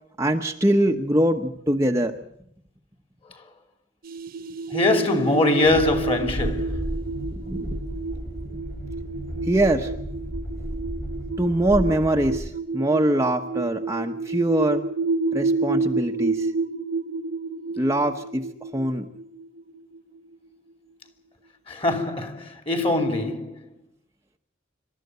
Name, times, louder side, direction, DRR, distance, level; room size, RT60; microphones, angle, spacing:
voice 1, 0.2-2.1 7.3-7.8 9.5-9.9 11.4-14.8 15.3-16.5 17.8-18.5 18.7-19.1, right 1 dB, 15° right, 1.0 m, -23 dB
sound 1, 4.0-20.3, right 3 dB, 45° right, 0.8 m, -30 dB
voice 2, 4.7-6.9 21.7-23.7, left 2 dB, 30° left, 2.8 m, -23 dB
Train, 5.6-12.5, equal, 50° left, 4.7 m, -33 dB
27.0 x 13.5 x 9.4 m
head